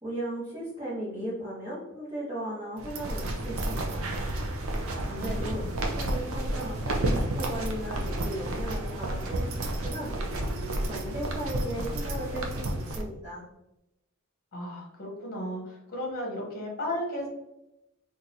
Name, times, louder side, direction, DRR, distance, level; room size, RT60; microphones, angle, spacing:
voice 1, 0.0-4.1 5.1-10.2 10.8-13.4, right 1 dB, 20° right, -10 dB, 1.0 m, -36 dB
sound 1, 2.8-13.0, right 1 dB, 75° right, 0.5 m, -31 dB
voice 2, 5.1-5.7 14.5-17.3, left 1 dB, 45° left, -1 dB, 1.2 m, -35 dB
3.9 x 2.4 x 2.8 m, 0.89 s
head